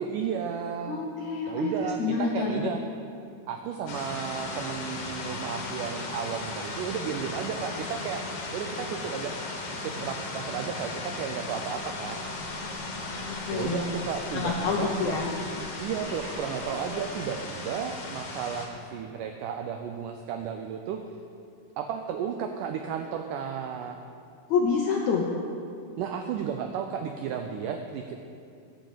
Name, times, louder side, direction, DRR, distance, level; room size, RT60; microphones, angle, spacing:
voice 1, 0.0-1.0 1.5-2.8 3.5-9.3 9.8-12.2 13.5-15.2 15.8-21.0 21.8-24.0 26.0-28.2, right 7 dB, 85° right, 5 dB, 1.8 m, -33 dB
voice 2, 0.9-2.7 13.3-13.8 14.3-15.3 24.5-25.3, left 5 dB, 75° left, -1 dB, 1.7 m, -27 dB
sound 1, 3.9-18.7, left 3 dB, 55° left, 2.7 m, -36 dB
Slam, 11.7-17.7, right 1 dB, 45° right, 2.7 m, -47 dB
12.0 x 7.7 x 7.5 m, 2.5 s
omnidirectional pair, 4.4 m